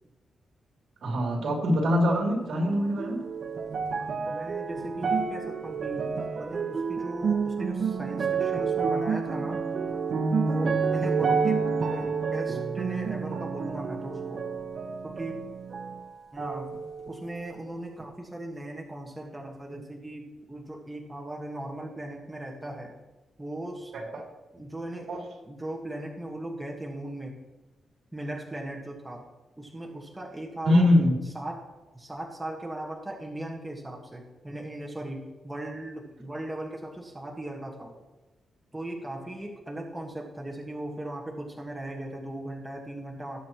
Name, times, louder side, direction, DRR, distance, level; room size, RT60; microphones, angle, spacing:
voice 1, 1.0-3.3 23.9-24.2 25.1-25.2 30.6-31.1, left 1 dB, 70° right, -1 dB, 2.9 m, -23 dB
sound 1, 2.6-16.0 16.4-17.3 18.0-18.1, right 5 dB, 50° right, 0.9 m, -29 dB
voice 2, 4.0-9.6 10.4-11.6 11.9-14.5 15.0-15.4 16.3-16.7 17.1-22.9 23.4-23.9 24.5-25.1 25.5-27.4 28.1-29.3 29.6-30.9 31.3-31.7 31.9-37.9 38.7-43.4, right 1 dB, 5° right, -2 dB, 1.5 m, -38 dB
19.0 x 7.6 x 3.0 m, 1.1 s
wide cardioid pair, 145°, 0 cm